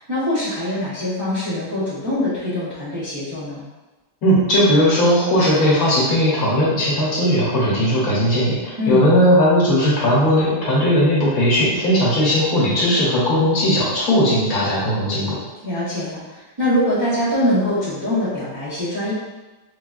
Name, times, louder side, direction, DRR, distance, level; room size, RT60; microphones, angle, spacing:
voice 1, 0.0-3.6 8.8-9.0 15.6-19.1, left 1 dB, 25° right, -12 dB, 0.7 m, -23 dB
voice 2, 4.2-15.4, equal, 70° left, -7 dB, 1.5 m, -17 dB
3.7 x 2.2 x 2.4 m, 1.1 s
omnidirectional pair, 1.6 m